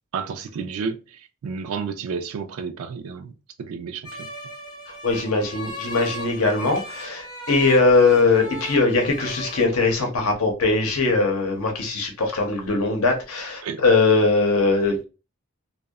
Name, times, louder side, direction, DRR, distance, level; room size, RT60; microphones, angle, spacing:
voice 1, 0.1-3.3 3.6-4.3 13.6-13.8, right 5 dB, 75° right, 0.3 m, -31 dB
sound 1, 4.0-9.6, equal, 20° left, 0.9 m, -37 dB
voice 2, 5.0-15.0, left 3 dB, 85° left, 0.7 m, -20 dB
2.6 x 2.1 x 2.3 m
head